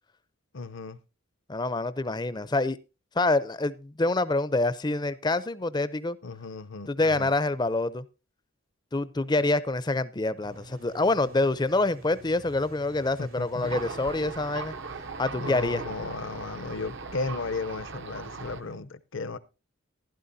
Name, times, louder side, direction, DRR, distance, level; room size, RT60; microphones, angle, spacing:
voice 1, 0.5-1.0 6.2-7.3 13.2-13.8 15.4-19.4, left 3 dB, 65° left, 0.7 m, -35 dB
voice 2, 1.5-2.8 3.2-6.2 6.9-8.0 8.9-14.7 15.2-15.8, left 2 dB, 20° left, 0.5 m, -26 dB
sound 1, 10.4-18.8, right 2 dB, 85° right, 2.8 m, -50 dB
Thunder, 13.6-18.6, right 4 dB, 55° right, 0.7 m, -39 dB
15.5 x 11.5 x 2.7 m
head